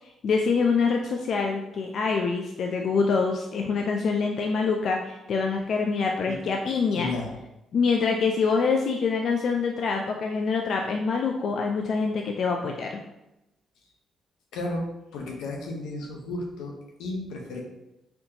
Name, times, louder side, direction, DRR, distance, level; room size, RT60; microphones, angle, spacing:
voice 1, 0.2-7.1 7.7-13.0, left 5 dB, 60° left, 2 dB, 0.4 m, -25 dB
voice 2, 7.0-7.4 14.5-17.6, left 2 dB, 90° left, 1 dB, 0.7 m, -33 dB
4.3 x 2.8 x 2.7 m, 0.90 s
cardioid pair, 90°, 0 cm